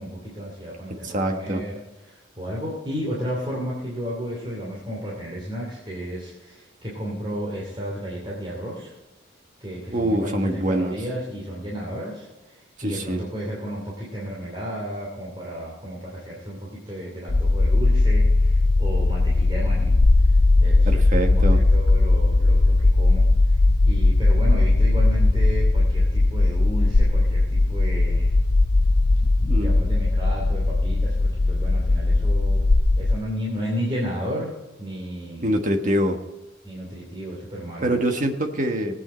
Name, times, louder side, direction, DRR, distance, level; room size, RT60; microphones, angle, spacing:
voice 1, 0.0-9.0 9.6-20.0 20.2-28.3 29.6-32.7 33.0-35.5 36.6-37.9, equal, 25° right, -5 dB, 2.8 m, -33 dB
voice 2, 1.0-1.6 9.9-10.9 12.8-13.2 20.8-21.6 29.5-29.8 35.4-36.2 37.8-39.0, right 1 dB, 40° right, 4 dB, 1.4 m, -24 dB
sound 1, 17.3-33.2, left 2 dB, 45° left, 0.6 m, -18 dB
19.0 x 8.7 x 4.4 m, 1.1 s
head